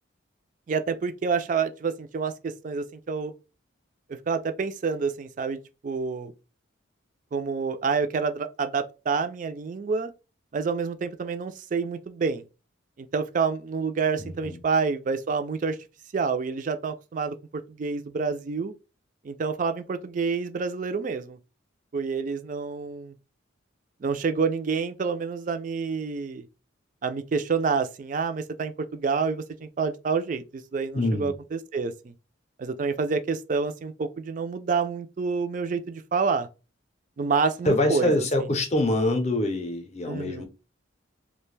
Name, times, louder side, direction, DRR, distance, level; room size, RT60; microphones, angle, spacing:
voice 1, 0.7-3.3 4.3-5.6 5.8-6.3 7.3-10.1 10.5-12.4 13.0-15.8 16.1-18.7 19.2-21.4 21.9-23.1 24.0-26.4 27.0-32.1 32.6-36.5 37.2-38.3 40.1-40.4, right 5 dB, 40° right, 0.3 m, -28 dB
voice 2, 14.2-14.6 30.9-31.4 37.6-40.4, left 1 dB, 35° left, 0.5 m, -25 dB
2.4 x 2.1 x 3.2 m
head